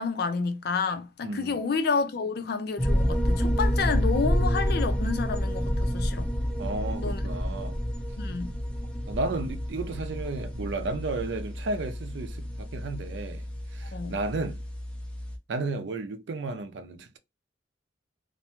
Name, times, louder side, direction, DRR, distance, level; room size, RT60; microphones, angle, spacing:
voice 1, 0.0-6.3 7.0-7.2 8.2-8.5 13.9-14.2, left 4 dB, 60° left, 0.4 m, -30 dB
voice 2, 1.2-1.6 6.6-7.8 9.1-13.5 13.7-14.6 15.5-17.2, right 3 dB, 70° right, 0.4 m, -33 dB
sound 1, 2.8-15.4, equal, 5° left, 0.5 m, -29 dB
2.5 x 2.1 x 2.8 m
head